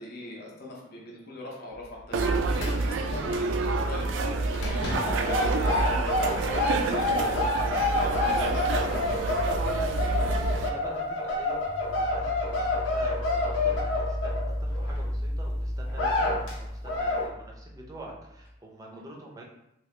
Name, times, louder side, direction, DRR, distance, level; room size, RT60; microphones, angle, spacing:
voice 1, 0.0-8.8 18.9-19.0, left 2 dB, 55° left, -3 dB, 0.7 m, -41 dB
sound 1, 1.7-3.2 3.5-3.6 4.0-8.4 11.5-18.5, equal, 20° left, 0.8 m, -36 dB
sound 2, 2.1-10.7, right 3 dB, 75° right, 0.3 m, -28 dB
sound 3, 2.2-3.2 3.4-3.7 4.5-15.0 15.4-15.5 15.9-16.5 16.8-17.3, left 2 dB, 85° left, 0.8 m, -28 dB
voice 2, 10.2-11.6 11.9-19.4, right 2 dB, 20° right, -1 dB, 0.5 m, -46 dB
2.9 x 2.8 x 3.2 m, 0.83 s
head